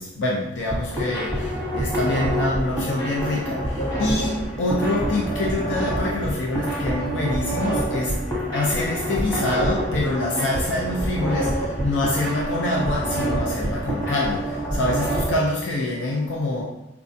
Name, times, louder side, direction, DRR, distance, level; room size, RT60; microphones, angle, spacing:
voice 1, 0.0-8.2 8.5-16.6, left 2 dB, 85° left, -3 dB, 0.5 m, -25 dB
sound 1, 0.7-15.3, right 1 dB, 15° left, 0.9 m, -27 dB
sound 2, 2.5-14.2, equal, 40° left, 1.2 m, -39 dB
4.7 x 2.3 x 2.6 m, 0.87 s
head